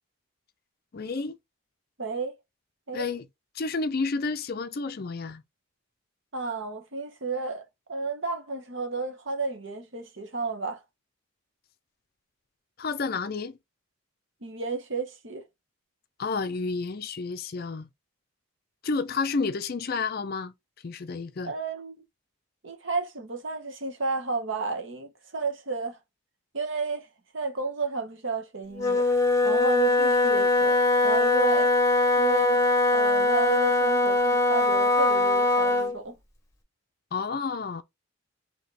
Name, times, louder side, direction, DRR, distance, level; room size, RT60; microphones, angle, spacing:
voice 1, 0.9-1.4 2.9-3.3 3.5-5.4 12.8-13.6 16.2-17.9 18.8-20.5 20.8-21.5 37.1-37.8, left 4 dB, 45° left, 0.4 m, -30 dB
voice 2, 2.0-2.4 2.9-3.0 6.3-10.8 14.4-15.4 21.4-22.0 22.6-26.0 26.5-27.1 27.3-29.1 29.4-30.8 31.0-31.7 32.2-32.7 32.9-36.2, right 4 dB, 60° right, 1.0 m, -32 dB
Wind instrument woodwind instrument, 28.7-36.0, left 2 dB, 15° left, 1.1 m, -22 dB
4.2 x 2.9 x 3.2 m
head